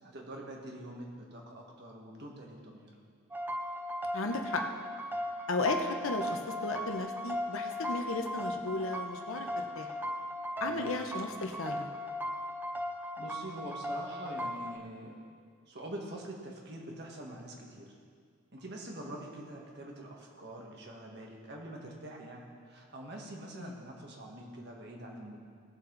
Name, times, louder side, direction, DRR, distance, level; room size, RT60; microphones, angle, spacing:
voice 1, 0.0-2.9 10.6-10.9 13.2-15.2 15.7-17.9 18.5-25.4, right 1 dB, 50° right, -1 dB, 1.8 m, -45 dB
sound 1, 3.3-14.8, equal, 10° right, 0.4 m, -37 dB
voice 2, 4.1-4.6 5.5-9.9 10.6-11.9 23.5-23.8, left 3 dB, 75° left, 4 dB, 1.0 m, -35 dB
18.0 x 6.9 x 4.1 m, 2.1 s
head